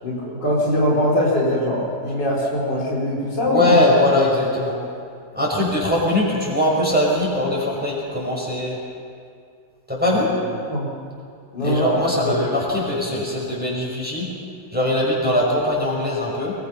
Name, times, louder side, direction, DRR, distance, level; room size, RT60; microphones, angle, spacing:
voice 1, 0.0-3.8 10.7-10.9 11.5-11.9 12.2-12.4, left 1 dB, 80° left, -4 dB, 5.1 m, -22 dB
voice 2, 3.4-4.8 5.3-8.8 9.9-10.3 11.6-14.3 14.7-16.5, left 1 dB, 5° right, -5 dB, 6.2 m, -21 dB
24.0 x 21.5 x 5.7 m, 2.3 s
omnidirectional pair, 1.9 m